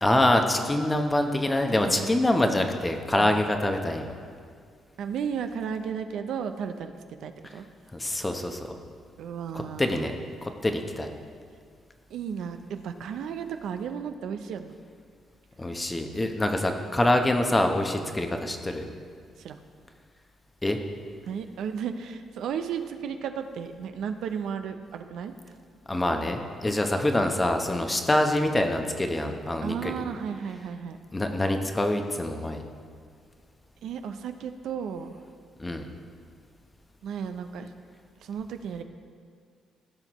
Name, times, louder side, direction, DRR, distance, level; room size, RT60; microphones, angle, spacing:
voice 1, 0.0-4.1 7.4-7.5 7.9-8.7 9.5-10.1 10.4-11.1 15.6-18.8 20.6-20.8 25.9-30.0 31.1-32.6 35.6-35.9, left 1 dB, 15° left, 5 dB, 0.8 m, -25 dB
voice 2, 5.0-6.9 7.2-7.7 9.2-10.1 12.1-14.8 18.0-18.3 19.4-19.6 21.3-25.3 29.6-31.0 33.8-35.1 37.0-37.7 38.2-38.8, right 7 dB, 75° right, 7 dB, 0.5 m, -34 dB
15.5 x 5.8 x 3.0 m, 2.1 s
cardioid pair, 90°, 0 cm